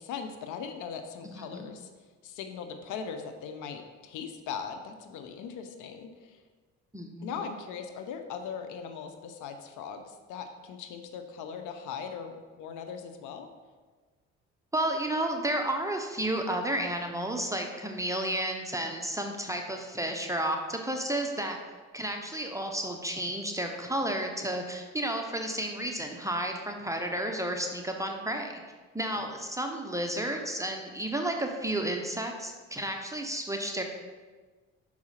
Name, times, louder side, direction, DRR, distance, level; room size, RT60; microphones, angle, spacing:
voice 1, 0.0-1.9 2.2-6.4 7.2-13.5 29.1-29.3, left 6 dB, 80° left, 7 dB, 0.8 m, -39 dB
voice 2, 1.3-1.7 6.9-7.4 14.7-21.6 21.9-28.6 28.9-33.8, right 1 dB, 10° right, 2 dB, 0.9 m, -32 dB
6.1 x 4.8 x 5.7 m, 1.4 s
supercardioid pair, 70°, 30 cm